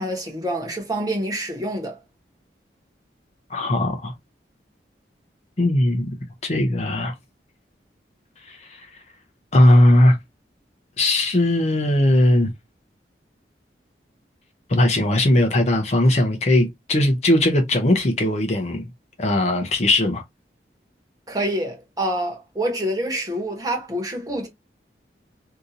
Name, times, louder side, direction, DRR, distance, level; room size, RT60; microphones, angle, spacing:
voice 1, 0.0-2.0 21.3-24.5, right 1 dB, 20° right, 1.1 m, -26 dB
voice 2, 3.5-4.1 5.6-6.1 6.4-7.1 8.5-8.8 9.5-10.2 11.0-12.5 14.7-18.9 19.2-20.2, left 1 dB, 40° left, 0.6 m, -18 dB
2.8 x 2.6 x 3.7 m
head